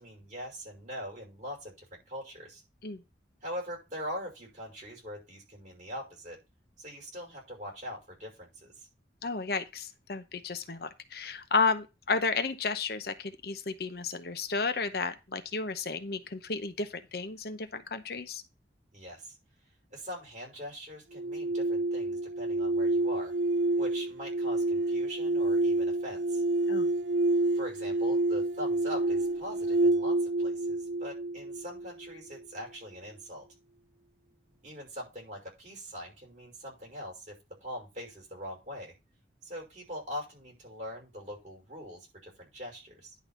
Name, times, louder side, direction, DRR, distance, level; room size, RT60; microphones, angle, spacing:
voice 1, 0.0-2.6 3.4-6.4 6.8-8.9 18.9-19.4 19.9-23.3 23.7-26.4 27.5-33.5 34.6-38.9 39.4-43.2, equal, 45° right, 5.5 m, -42 dB
voice 2, 9.2-18.4 26.7-26.9, left 4 dB, 55° left, 0.8 m, -32 dB
sound 1, 21.1-32.2, right 2 dB, 90° right, 0.7 m, -28 dB
10.5 x 4.0 x 5.8 m
head